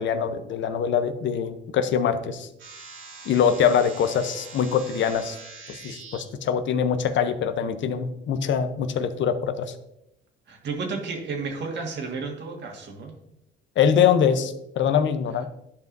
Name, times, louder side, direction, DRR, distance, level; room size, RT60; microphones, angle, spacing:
voice 1, 0.0-2.5 3.3-5.4 5.7-9.7 13.8-15.4, left 7 dB, 70° left, 10 dB, 0.7 m, -23 dB
sound 1, 2.6-6.2, right 4 dB, 80° right, 2.5 m, -43 dB
voice 2, 10.5-13.2, right 4 dB, 65° right, 2 dB, 1.7 m, -32 dB
11.5 x 5.3 x 2.6 m, 0.83 s
cardioid pair, 90°, 20 cm